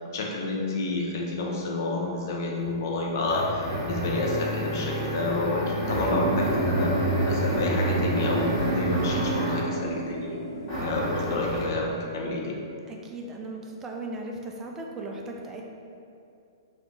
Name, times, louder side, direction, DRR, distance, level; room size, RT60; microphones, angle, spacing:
voice 1, 0.1-10.4 10.8-12.5, left 2 dB, 50° left, -1 dB, 0.5 m, -29 dB
sound 1, 2.6-9.8 10.7-11.8, right 1 dB, 35° left, 1.1 m, -29 dB
sound 2, 6.1-11.3, right 2 dB, 85° right, 0.7 m, -30 dB
voice 2, 10.7-11.4 12.9-15.6, right 2 dB, 20° right, 0 dB, 0.3 m, -38 dB
2.7 x 2.4 x 3.5 m, 2.6 s
figure-of-eight pair, 110°, 2 cm